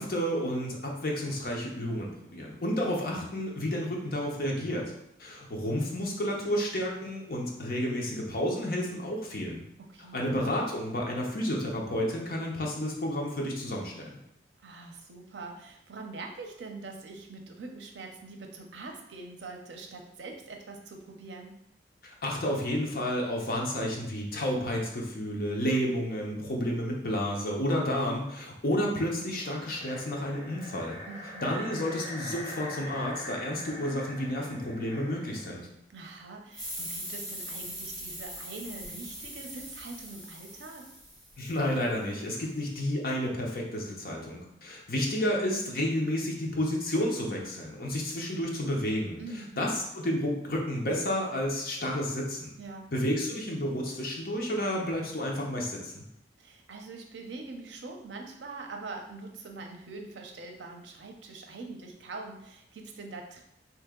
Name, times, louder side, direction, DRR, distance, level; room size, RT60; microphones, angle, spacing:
voice 1, 0.0-4.9 5.2-9.6 10.1-14.2 22.0-31.0 31.4-35.7 41.4-49.2 49.6-52.5 52.9-56.0, equal, 55° left, -1 dB, 0.7 m, -31 dB
voice 2, 9.8-10.2 14.6-21.6 31.1-31.5 35.9-40.9 49.2-49.7 52.6-52.9 56.4-63.4, right 3 dB, 80° right, 2 dB, 0.6 m, -43 dB
sound 1, 29.2-35.7, left 1 dB, 35° left, 1.3 m, -43 dB
sound 2, 36.5-41.8, equal, ahead, 1.1 m, -41 dB
2.9 x 2.8 x 3.6 m, 0.80 s
head